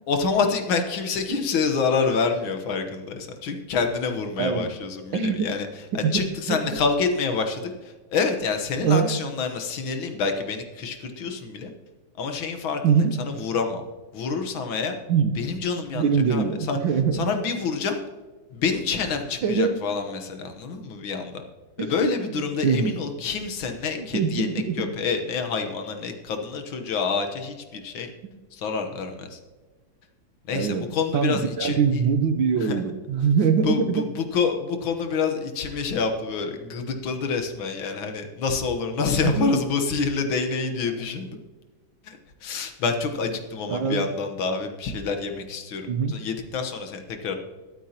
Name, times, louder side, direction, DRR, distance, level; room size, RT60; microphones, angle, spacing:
voice 1, 0.1-5.7 5.9-7.7 8.1-11.7 12.2-13.8 14.1-15.0 15.4-16.8 17.1-18.0 18.5-21.4 21.8-24.5 24.8-28.1 28.5-29.4 30.5-32.0 32.6-32.8 33.6-41.4 42.0-47.4, left 5 dB, 90° left, 6 dB, 1.9 m, -27 dB
voice 2, 4.4-4.7 5.1-5.5 6.0-6.2 6.5-6.6 8.8-9.1 12.8-13.1 15.1-15.4 15.9-17.2 19.4-19.8 21.8-22.1 22.6-23.0 24.0-24.8 30.5-30.9 31.1-34.0 39.2-39.5 43.7-44.1 45.9-46.1, right 6 dB, 80° right, 8 dB, 1.7 m, -23 dB
22.0 x 8.2 x 2.9 m, 1.3 s
omnidirectional pair, 2.1 m